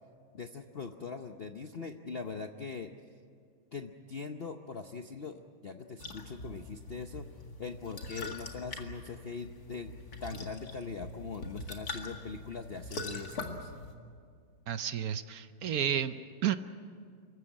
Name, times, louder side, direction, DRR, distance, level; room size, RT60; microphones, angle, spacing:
voice 1, 0.3-2.9 3.7-7.3 7.6-9.9 10.2-13.7, left 5 dB, 85° left, 6 dB, 0.5 m, -41 dB
sound 1, 6.0-13.9, left 2 dB, 50° left, 2.4 m, -43 dB
voice 2, 14.7-16.6, right 9 dB, 65° right, 11 dB, 0.9 m, -32 dB
26.0 x 15.0 x 9.9 m, 2.1 s
omnidirectional pair, 2.2 m